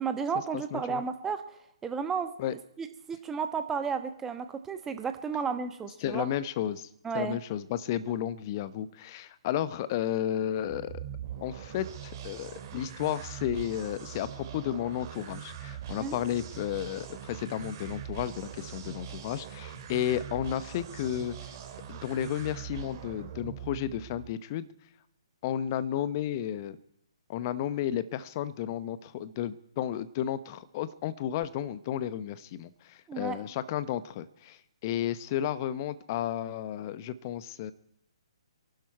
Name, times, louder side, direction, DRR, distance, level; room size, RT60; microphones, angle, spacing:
voice 1, 0.0-1.4 1.8-6.3 7.0-7.4 16.0-16.2 33.1-33.4, right 6 dB, 10° right, 8 dB, 1.1 m, -33 dB
voice 2, 0.5-1.0 2.4-2.5 6.0-6.9 7.1-10.9 11.4-11.9 12.2-21.5 21.9-24.7 25.4-26.8 27.3-37.7, left 11 dB, 35° left, 15 dB, 0.9 m, -33 dB
sound 1, 10.6-24.3, right 9 dB, 35° right, 2.3 m, -42 dB
26.0 x 12.0 x 4.6 m, 0.79 s
figure-of-eight pair, 130°, 3 cm